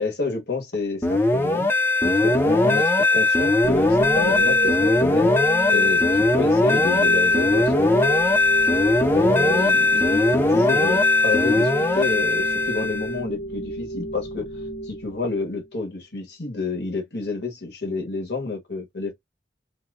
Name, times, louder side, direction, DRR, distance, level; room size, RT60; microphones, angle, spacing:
voice 1, 0.0-1.7 2.0-5.3 5.7-7.9 9.1-14.5 14.9-19.1, left 3 dB, 70° left, 1.4 m, -29 dB
sound 1, 1.0-13.1, left 2 dB, 15° left, 0.6 m, -19 dB
sound 2, 3.6-15.7, right 1 dB, 90° left, 2.6 m, -32 dB
4.1 x 2.2 x 2.5 m
head